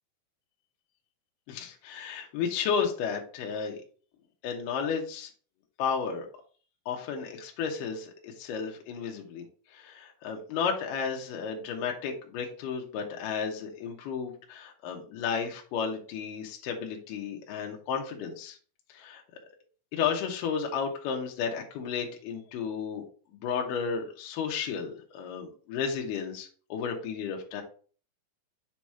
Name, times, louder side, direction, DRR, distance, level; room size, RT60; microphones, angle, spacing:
voice 1, 1.5-3.8 4.4-5.3 5.8-6.3 6.9-9.5 9.7-18.6 18.9-19.2 19.9-23.0 23.3-27.6, left 6 dB, 70° left, 2 dB, 2.5 m, -33 dB
7.2 x 3.0 x 4.8 m, 0.41 s
omnidirectional pair, 4.3 m